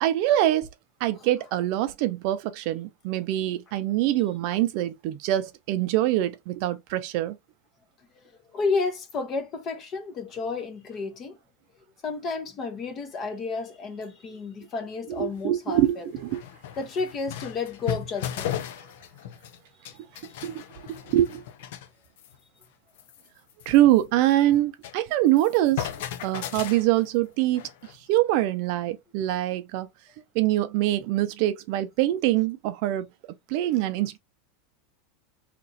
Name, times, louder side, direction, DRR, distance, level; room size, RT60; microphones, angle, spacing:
voice 1, 0.0-0.7 1.0-7.4 15.1-16.4 20.4-20.6 20.9-21.4 23.7-25.9 26.2-27.6 28.1-29.9 30.3-33.1 33.5-34.2, right 14 dB, 50° right, 0.5 m, -24 dB
voice 2, 8.5-11.4 12.0-16.0 16.8-18.5, left 4 dB, 30° left, 0.8 m, -31 dB
sound 1, 15.2-15.3 15.8-15.9 16.1-19.6 19.9-21.9 22.2-22.4 22.6-22.7 23.0-25.0 25.3-28.0, left 10 dB, 70° left, 0.5 m, -36 dB
2.9 x 2.5 x 4.1 m
supercardioid pair, 160°, 0 cm